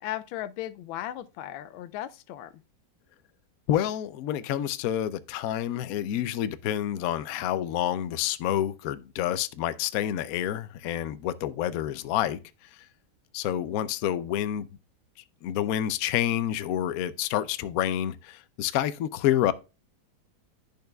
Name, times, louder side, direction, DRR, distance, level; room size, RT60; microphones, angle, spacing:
voice 1, 0.0-2.5, left 13 dB, 90° left, 1.4 m, -36 dB
voice 2, 3.7-12.9 13.3-14.7 15.4-19.5, left 11 dB, 75° left, 0.8 m, -28 dB
10.0 x 6.5 x 2.3 m
omnidirectional pair, 2.1 m